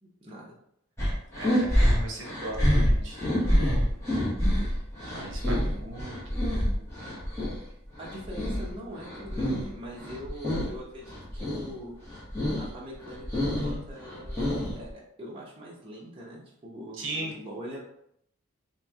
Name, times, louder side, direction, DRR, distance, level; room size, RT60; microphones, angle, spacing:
voice 1, 0.0-0.5 8.0-11.9 12.5-17.8, equal, 25° right, -5 dB, 0.7 m, -43 dB
sound 1, 1.0-7.6 7.9-9.7 10.0-10.7 11.1-11.7 12.0-12.7 13.0-14.9, equal, 15° left, 1.1 m, -27 dB
voice 2, 1.4-3.8 4.6-4.8 5.1-7.1 16.9-17.3, right 2 dB, 60° right, 0 dB, 0.8 m, -39 dB
3.1 x 3.0 x 3.5 m, 0.72 s
head